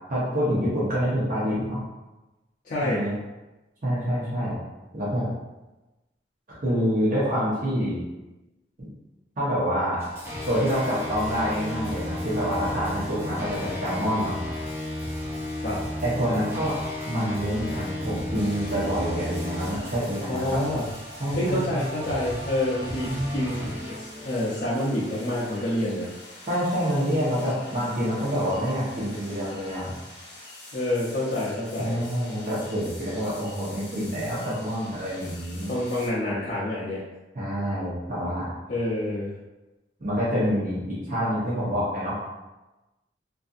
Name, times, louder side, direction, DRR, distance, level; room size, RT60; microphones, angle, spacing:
voice 1, 0.1-1.8 2.8-3.1 3.8-4.6 4.9-5.3 6.5-8.0 9.4-10.0 10.5-14.4 16.0-16.7 17.1-20.6 21.2-21.8 23.1-23.6 26.5-29.9 31.8-35.7 37.3-38.4 40.0-42.1, equal, 50° right, -10 dB, 0.8 m, -27 dB
voice 2, 2.6-3.1 15.6-15.9 20.3-20.8 21.3-26.1 30.7-32.0 35.7-37.0 38.7-39.3, left 1 dB, 50° left, -9 dB, 0.5 m, -28 dB
sound 1, 10.0-24.3, left 1 dB, 15° right, 0.5 m, -34 dB
sound 2, 18.3-36.1, left 2 dB, 75° left, 0.9 m, -45 dB
2.6 x 2.5 x 2.4 m, 1.1 s
head